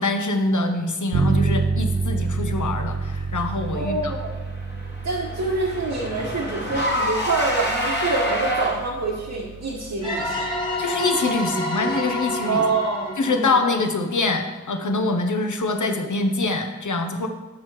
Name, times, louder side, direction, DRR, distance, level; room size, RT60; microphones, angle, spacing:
voice 1, 0.0-4.1 10.8-12.6 13.2-17.3, left 3 dB, 75° left, 6 dB, 0.9 m, -24 dB
Bass guitar, 1.1-10.9, right 4 dB, 55° right, 0.6 m, -29 dB
voice 2, 3.7-4.3 5.0-10.5 12.4-13.5, right 3 dB, 80° right, -4 dB, 1.2 m, -26 dB
Car / Engine, 4.1-9.1, equal, 35° left, 1.4 m, -27 dB
sound 1, 10.0-14.6, left 1 dB, 15° left, 2.0 m, -29 dB
7.4 x 6.1 x 4.7 m, 1.2 s
wide cardioid pair, 45°, 30 cm